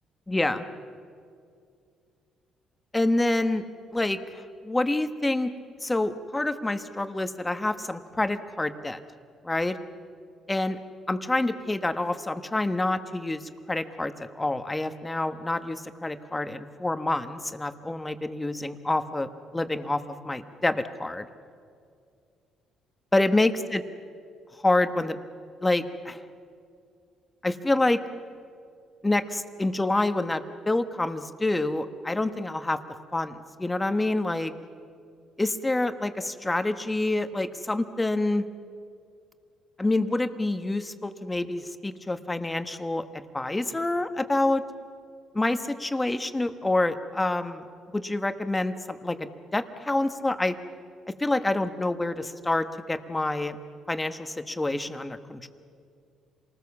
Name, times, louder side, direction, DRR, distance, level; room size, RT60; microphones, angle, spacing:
voice 1, 0.3-0.6 2.9-3.6 3.9-5.5 5.8-9.0 9.4-9.8 10.5-10.8 11.1-13.4 13.7-21.3 23.1-23.8 24.6-25.2 25.6-26.2 27.4-28.0 29.0-32.8 33.1-34.5 35.4-38.4 39.8-44.6 45.3-47.6 47.9-50.5 51.2-53.6 53.9-55.5, left 2 dB, 15° left, 10 dB, 1.3 m, -27 dB
27.0 x 19.5 x 7.2 m, 2.3 s
cardioid pair, 90°, 0 cm